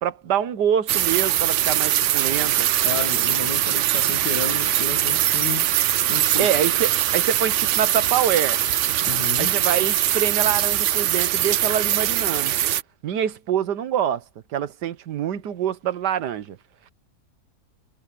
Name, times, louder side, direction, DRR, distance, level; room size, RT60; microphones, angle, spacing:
voice 1, 0.0-2.7 6.4-8.6 9.4-12.5 13.0-14.2 14.5-16.6, right 9 dB, 80° right, 1.6 m, -25 dB
sound 1, 0.9-12.8, right 12 dB, 65° right, 0.7 m, -22 dB
voice 2, 2.8-5.7 6.1-6.5 9.0-9.6, left 5 dB, 90° left, 2.6 m, -32 dB
omnidirectional pair, 1.8 m